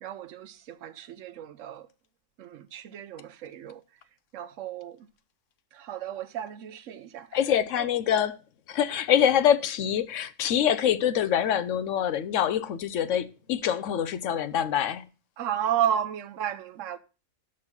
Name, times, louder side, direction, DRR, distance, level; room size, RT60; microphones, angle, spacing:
voice 1, 0.0-1.9 2.4-3.8 4.3-5.1 5.7-7.9 15.4-17.0, right 10 dB, 70° right, 1.0 m, -33 dB
voice 2, 7.3-8.4 8.7-15.0, left 9 dB, 70° left, 0.9 m, -25 dB
6.3 x 6.1 x 5.7 m
omnidirectional pair, 1.4 m